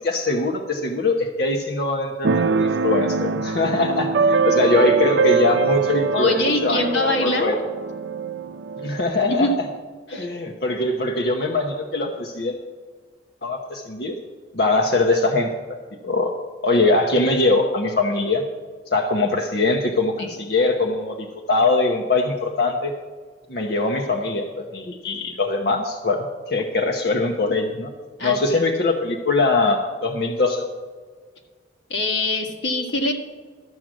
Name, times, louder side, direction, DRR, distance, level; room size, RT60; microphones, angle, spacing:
voice 1, 0.0-7.6 8.8-9.5 10.1-12.6 13.4-14.1 14.5-15.5 16.0-16.3 16.6-18.4 18.9-22.9 23.5-27.9 28.2-30.7, left 2 dB, 55° left, 2 dB, 0.9 m, -22 dB
Keyboard (musical), 2.2-9.7, right 5 dB, 70° right, 0.5 m, -23 dB
voice 2, 6.1-7.6 9.3-9.6 10.1-10.3 20.2-20.3 28.2-28.6 31.9-33.1, left 1 dB, 85° left, 2 dB, 1.8 m, -23 dB
13.0 x 7.7 x 6.2 m, 1.5 s
head